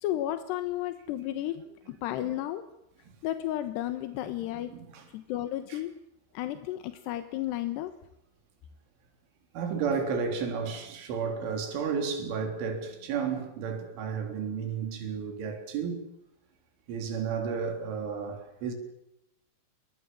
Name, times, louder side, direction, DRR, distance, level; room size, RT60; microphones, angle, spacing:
voice 1, 0.0-2.6 3.2-4.7 5.1-5.9 6.3-7.9, left 13 dB, 70° left, 3.0 m, -33 dB
voice 2, 4.7-5.0 5.7-5.8 9.5-16.0 16.9-18.7, right 6 dB, 75° right, 6.0 m, -32 dB
28.5 x 23.5 x 7.5 m
omnidirectional pair, 5.6 m